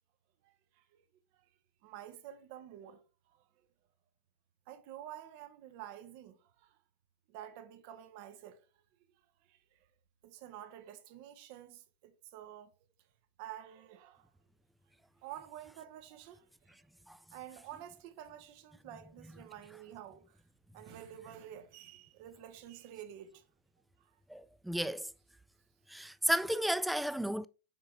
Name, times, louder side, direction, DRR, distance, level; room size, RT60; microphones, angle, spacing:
voice 1, 0.4-1.0 1.8-3.4 4.7-6.8 7.3-8.6 9.5-9.8 10.2-12.7 13.4-14.3 15.2-16.5 17.3-20.4 20.7-23.4 24.0-24.1, right 11 dB, 45° right, 0.9 m, -50 dB
voice 2, 24.3-25.1 25.9-27.5, right 1 dB, ahead, 0.3 m, -33 dB
7.1 x 4.8 x 2.9 m
figure-of-eight pair, 90°, 0 cm